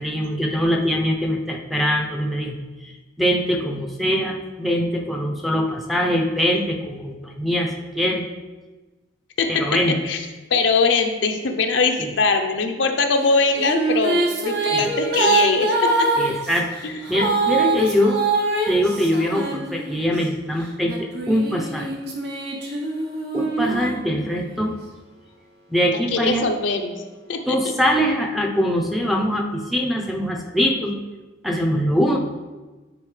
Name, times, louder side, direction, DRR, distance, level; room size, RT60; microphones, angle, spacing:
voice 1, 0.0-8.2 9.5-10.0 14.7-14.9 16.2-16.8 17.1-18.2 18.7-21.9 23.3-24.7 25.7-26.5 27.5-30.9 31.4-32.2, equal, ahead, 0 dB, 0.6 m, -23 dB
voice 2, 10.5-16.1 16.8-17.0 26.1-26.9 27.3-27.6, left 4 dB, 75° left, 5 dB, 0.6 m, -21 dB
Female singing, 13.2-20.2 20.8-24.6, right 3 dB, 55° right, 1.0 m, -24 dB
9.8 x 4.1 x 3.2 m, 1.2 s
head